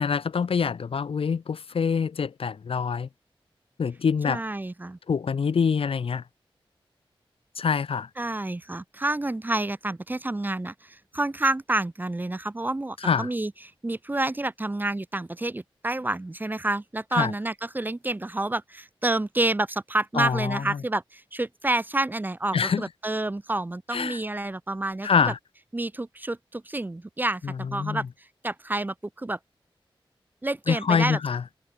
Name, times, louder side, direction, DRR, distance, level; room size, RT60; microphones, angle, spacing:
voice 1, 0.0-3.1 3.8-4.4 5.1-6.2 7.6-8.1 13.0-13.3 17.1-17.3 20.2-20.8 22.5-22.8 23.9-24.2 25.0-25.4 27.4-28.0 30.7-31.4, left 6 dB, 80° left, 1.0 m, -25 dB
voice 2, 4.3-5.0 8.2-25.3 25.7-29.4 30.4-31.2, right 2 dB, 20° right, 0.7 m, -29 dB
wide cardioid pair, 115°, 9 cm